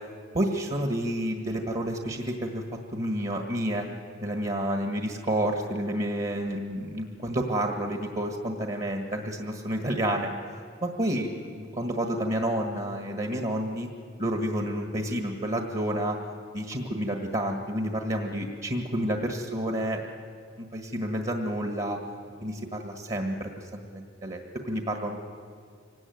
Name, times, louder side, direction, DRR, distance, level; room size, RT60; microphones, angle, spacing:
voice 1, 0.3-2.6 2.9-3.9 4.2-10.3 10.8-13.9 14.2-16.2 16.5-20.0 20.6-22.0 22.4-25.2, right 1 dB, 40° right, 3 dB, 1.7 m, -30 dB
24.5 x 17.5 x 9.4 m, 2.1 s
head